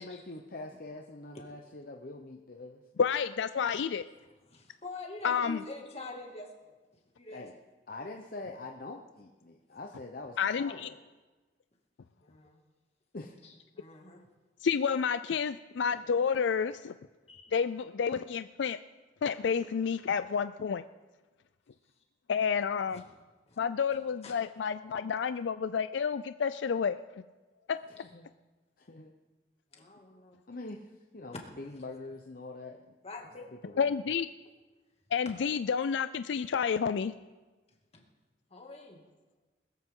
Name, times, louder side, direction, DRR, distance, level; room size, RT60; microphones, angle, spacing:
voice 1, 0.0-2.8 7.3-7.5 7.9-11.0 13.1-13.5 27.9-28.3 28.8-29.1 30.5-32.9 33.6-33.9, left 2 dB, 55° left, 3 dB, 0.9 m, -44 dB
voice 2, 3.0-4.0 5.2-5.6 10.4-10.9 14.6-16.9 17.5-18.8 19.2-20.8 22.3-23.0 23.6-27.0 27.7-27.9 33.8-34.3 35.1-37.1, left 6 dB, 80° left, 12 dB, 0.4 m, -30 dB
voice 3, 4.5-6.5 6.9-7.5 12.2-12.6 13.4-14.3 17.3-17.5 22.9-23.6 23.9-24.3 29.7-30.4 33.0-33.5 35.3-35.4 37.9-38.0 38.5-39.0, left 3 dB, 35° left, 1 dB, 2.4 m, -46 dB
20.5 x 14.0 x 3.8 m, 1.2 s
head